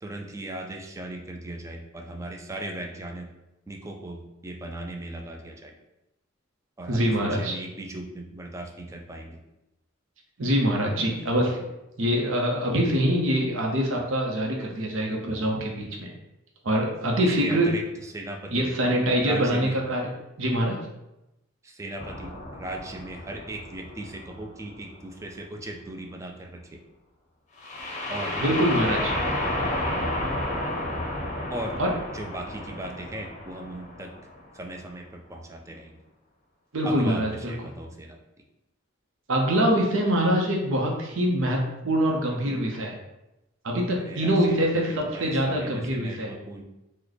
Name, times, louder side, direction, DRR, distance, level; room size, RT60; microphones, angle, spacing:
voice 1, 0.0-3.3 3.7-5.7 6.8-9.4 17.2-18.7 19.2-19.8 21.6-26.8 28.1-28.4 31.5-31.8 32.1-34.1 34.5-36.0 36.8-38.2 44.0-46.6, right 1 dB, 15° right, 2 dB, 0.3 m, -38 dB
voice 2, 6.9-7.5 10.4-11.6 12.0-16.1 16.6-17.7 18.5-20.0 20.4-20.8 28.4-29.1 31.8-31.9 36.7-37.5 39.3-42.9 43.6-46.3, equal, 75° right, 0 dB, 0.7 m, -24 dB
sound 1, 22.0-24.8 27.6-34.4, left 1 dB, 35° left, 0.6 m, -31 dB
3.1 x 2.1 x 3.9 m, 0.93 s
head